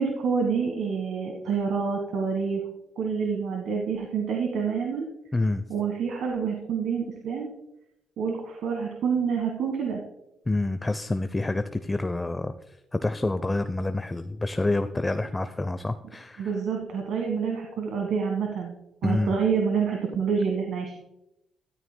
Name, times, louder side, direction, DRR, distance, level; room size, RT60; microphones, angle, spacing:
voice 1, 0.0-2.6 3.0-5.1 5.7-7.5 8.2-10.0 16.4-18.7 19.0-21.0, right 6 dB, 75° right, 2 dB, 1.5 m, -27 dB
voice 2, 5.3-5.6 10.5-16.5 19.0-19.3, left 2 dB, 15° left, 10 dB, 0.5 m, -28 dB
13.5 x 12.5 x 2.2 m, 0.86 s
cardioid pair, 90°, 0 cm